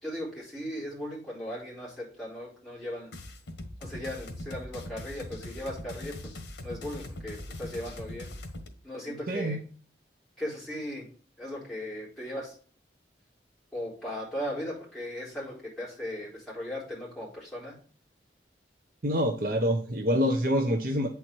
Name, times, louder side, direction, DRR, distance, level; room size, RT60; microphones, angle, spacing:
voice 1, 0.0-3.1 3.8-8.3 8.8-9.6 10.4-11.1 11.4-12.5 13.7-17.7, left 1 dB, 5° left, -7 dB, 4.4 m, -37 dB
sound 1, 3.1-8.7, left 1 dB, 80° left, 1.5 m, -41 dB
voice 2, 9.3-9.6 19.0-21.1, equal, 50° right, 4 dB, 0.9 m, -26 dB
8.5 x 4.6 x 4.5 m, 0.41 s
head